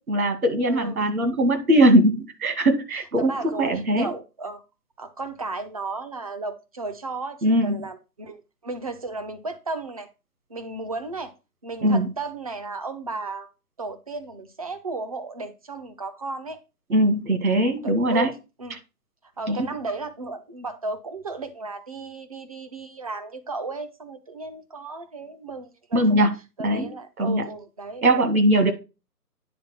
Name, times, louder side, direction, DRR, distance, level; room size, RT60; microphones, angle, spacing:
voice 1, 0.1-3.3 3.6-4.1 7.4-7.8 11.8-12.1 16.9-18.3 19.5-19.6 25.9-26.3 26.6-26.9 27.2-27.4 28.0-28.7, right 1 dB, 60° right, 2.2 m, -20 dB
voice 2, 0.6-1.0 3.2-4.6 5.0-10.1 10.5-11.3 11.6-13.5 13.8-16.6 17.8-18.3 18.6-18.8 19.4-26.3 26.6-28.2, right 3 dB, 25° right, 0.6 m, -34 dB
9.4 x 3.8 x 6.0 m
figure-of-eight pair, 140°, 48 cm